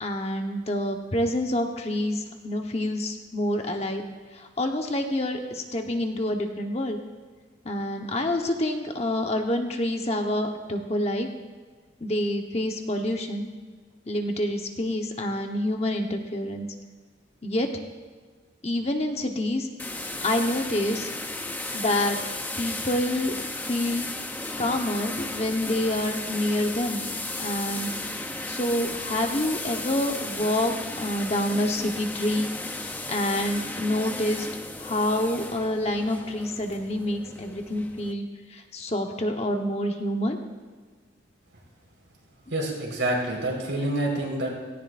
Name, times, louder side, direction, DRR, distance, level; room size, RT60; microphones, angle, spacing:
voice 1, 0.0-4.0 4.6-7.0 7.6-11.3 12.0-13.5 14.1-16.7 17.4-17.7 18.6-19.7 20.2-21.1 21.7-22.2 22.6-23.3 23.6-24.1 24.6-27.0 27.4-27.9 28.5-32.5 33.1-34.5 34.8-38.3 38.5-40.4, left 1 dB, 35° left, 3 dB, 1.1 m, -27 dB
sound 1, 19.8-38.1, left 2 dB, 10° left, 0.6 m, -35 dB
voice 2, 42.5-44.5, right 1 dB, 85° right, -1 dB, 4.5 m, -27 dB
17.5 x 17.5 x 2.6 m, 1.5 s
head